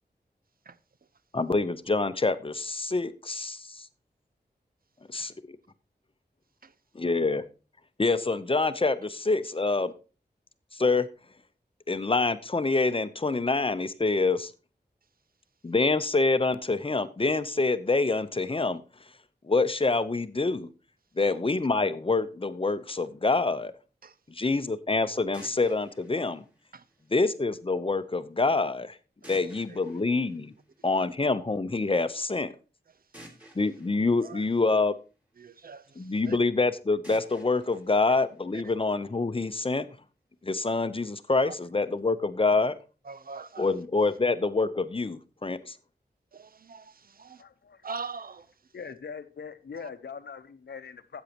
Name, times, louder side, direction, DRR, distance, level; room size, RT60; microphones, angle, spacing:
voice 1, 1.3-3.8 5.1-5.6 7.0-7.4 8.0-9.9 10.7-11.1 11.9-14.5 15.6-18.8 19.5-20.7 21.2-23.7 24.4-26.4 27.1-28.9 29.3-30.5 30.8-32.5 33.6-34.9 36.0-39.9 40.4-42.7 43.6-45.7, left 3 dB, 30° left, 0.7 m, -26 dB
sound 1, 25.3-27.4 29.2-31.2 33.1-35.3 37.0-39.1, equal, 10° right, 2.9 m, -54 dB
voice 2, 35.4-36.4 38.5-38.7 41.3-41.6 43.0-44.1 46.3-47.4 47.8-48.5 48.8-48.9 49.8-49.9, right 5 dB, 60° right, 0.6 m, -43 dB
voice 3, 47.4-47.8 48.7-51.2, left 6 dB, 80° left, 0.8 m, -42 dB
13.0 x 8.2 x 2.9 m
wide cardioid pair, 85°, 17 cm